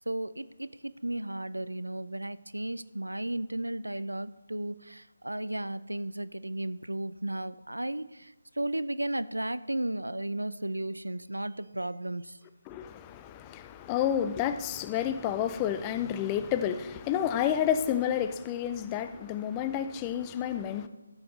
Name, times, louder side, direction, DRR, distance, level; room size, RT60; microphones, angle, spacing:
voice 1, 0.1-12.4, right 1 dB, 80° right, 0.4 m, -34 dB
voice 2, 12.7-20.9, left 9 dB, 15° left, 0.4 m, -30 dB
14.0 x 7.6 x 3.2 m
figure-of-eight pair, 150°, 0 cm